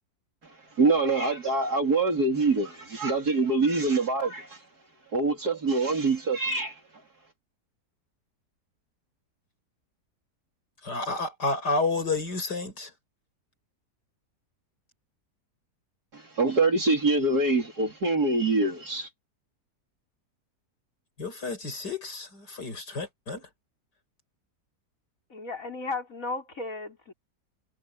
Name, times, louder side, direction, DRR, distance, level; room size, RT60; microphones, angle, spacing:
voice 1, 0.4-4.6 5.1-6.8 16.1-19.1, right 3 dB, 65° right, 4.1 m, -25 dB
voice 2, 10.8-12.9 21.2-23.5, left 3 dB, 90° left, 6.3 m, -30 dB
voice 3, 25.3-27.1, left 3 dB, 55° left, 5.2 m, -35 dB
omnidirectional pair, 1.8 m